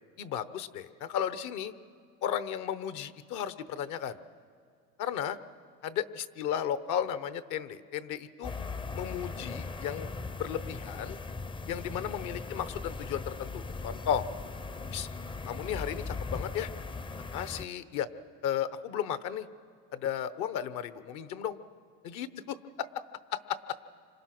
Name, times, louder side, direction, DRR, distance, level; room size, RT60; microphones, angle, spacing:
voice 1, 0.2-1.7 2.2-4.2 5.0-5.4 5.8-8.5 8.9-10.1 10.4-11.2 11.7-14.2 14.9-15.1 15.5-16.7 17.3-18.1 18.4-19.5 19.9-21.6 22.0-23.0 23.3-23.6, left 9 dB, 65° left, 13 dB, 1.1 m, -34 dB
sound 1, 8.4-17.7, left 3 dB, 15° left, 0.5 m, -39 dB
27.0 x 26.0 x 6.1 m, 2.3 s
supercardioid pair, 105°, 32 cm